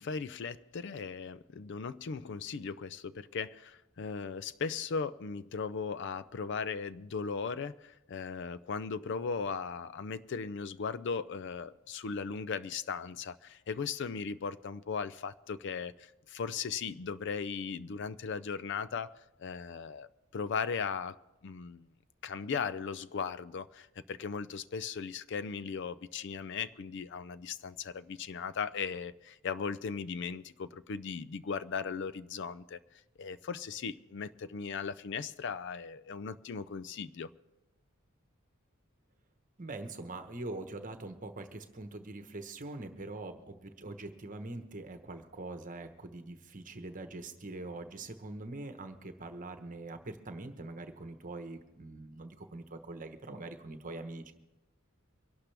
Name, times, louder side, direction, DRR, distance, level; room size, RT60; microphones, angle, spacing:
voice 1, 0.0-19.1 19.4-20.1 20.3-21.2 21.4-21.9 22.2-32.8 33.2-37.3, left 5 dB, 60° left, 0.4 m, -37 dB
voice 2, 39.6-54.3, right 2 dB, 40° right, 1.1 m, -43 dB
24.0 x 12.0 x 3.4 m
head